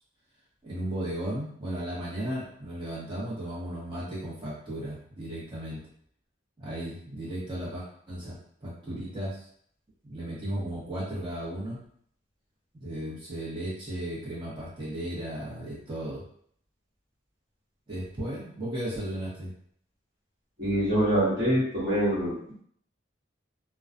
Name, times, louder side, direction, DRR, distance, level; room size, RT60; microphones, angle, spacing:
voice 1, 0.6-5.8 6.6-9.4 10.0-11.8 12.8-16.2 17.9-19.5, right 1 dB, 25° right, -8 dB, 0.9 m, -35 dB
voice 2, 20.6-22.6, equal, 50° right, -7 dB, 1.1 m, -25 dB
2.3 x 2.2 x 2.5 m, 0.63 s
head